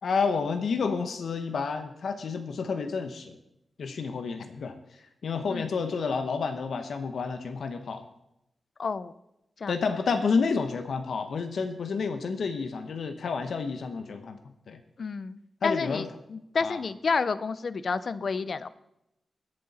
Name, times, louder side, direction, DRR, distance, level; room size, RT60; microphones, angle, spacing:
voice 1, 0.0-3.4 3.8-4.7 5.2-8.0 9.7-14.4 14.7-14.8 15.6-16.1 16.6-16.8, left 5 dB, 80° left, 7 dB, 1.1 m, -30 dB
voice 2, 8.8-9.1 9.6-9.7 15.0-16.0 16.3-18.7, left 4 dB, 55° left, 15 dB, 0.6 m, -30 dB
21.0 x 7.7 x 4.3 m, 0.83 s
wide cardioid pair, 115°, 0 cm